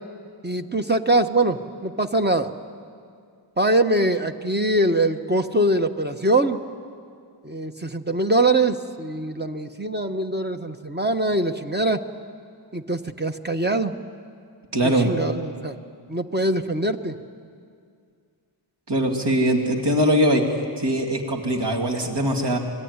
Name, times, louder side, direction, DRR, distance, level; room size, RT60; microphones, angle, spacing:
voice 1, 0.4-2.5 3.6-6.6 7.4-12.0 12.7-13.9 15.0-15.8 16.1-17.2, right 1 dB, 20° right, 6 dB, 1.1 m, -23 dB
voice 2, 14.7-15.1 18.9-20.4 20.8-22.6, equal, 60° right, 2 dB, 2.8 m, -21 dB
26.5 x 21.0 x 9.7 m, 2.2 s
wide cardioid pair, 85°, 46 cm